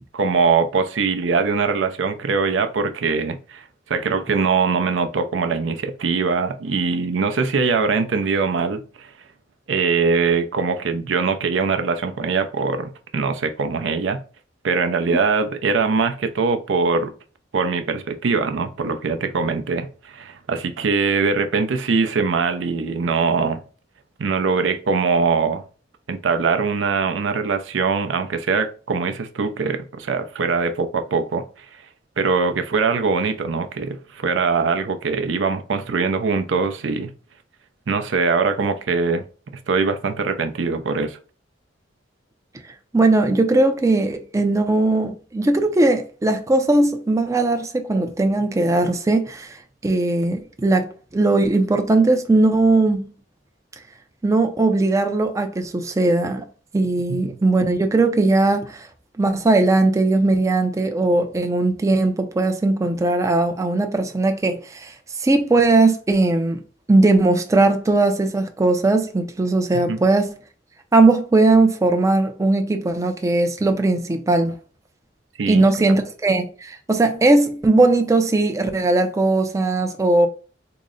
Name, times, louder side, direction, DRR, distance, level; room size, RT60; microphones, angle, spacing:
voice 1, 0.1-9.1 9.7-14.2 14.6-17.1 17.5-23.6 24.2-25.6 26.1-31.4 32.2-37.1 37.9-39.2 39.7-41.2 69.9-70.0 75.4-76.0, right 4 dB, 75° right, 0.5 m, -22 dB
voice 2, 42.9-49.6 49.8-53.0 54.2-56.4 56.7-58.9 59.2-66.6 66.9-70.3 70.9-74.6 75.5-80.3, right 2 dB, 15° right, 0.4 m, -19 dB
3.8 x 2.0 x 3.6 m
head